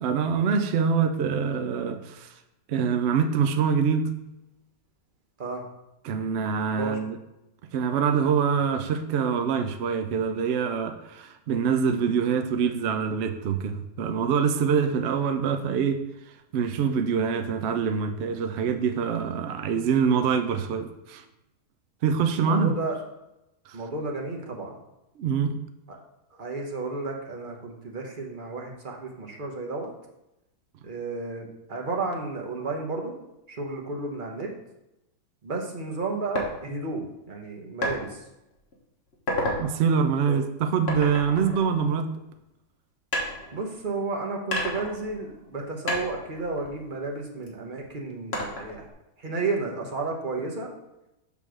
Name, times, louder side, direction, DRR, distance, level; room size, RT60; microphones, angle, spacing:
voice 1, 0.0-2.3 2.7-4.1 6.0-7.2 7.7-16.0 16.5-21.2 22.0-22.7 23.7-23.8 25.2-25.6 39.6-42.1, right 6 dB, 70° right, 7 dB, 0.6 m, -25 dB
voice 2, 22.4-23.0 23.7-24.7 25.9-26.0 26.4-29.9 30.8-33.1 33.5-34.5 35.4-38.2 40.3-40.4 43.5-48.9 49.2-50.7, right 3 dB, 35° right, 1 dB, 1.0 m, -32 dB
sound 1, 36.3-36.5 37.8-38.0 38.5-38.7 39.1-39.6 40.9-42.4 43.1-44.0 44.5-45.6 45.9-47.5 48.3-48.9, left 1 dB, 40° left, 1.5 m, -31 dB
6.7 x 3.5 x 6.2 m, 0.89 s
omnidirectional pair, 1.8 m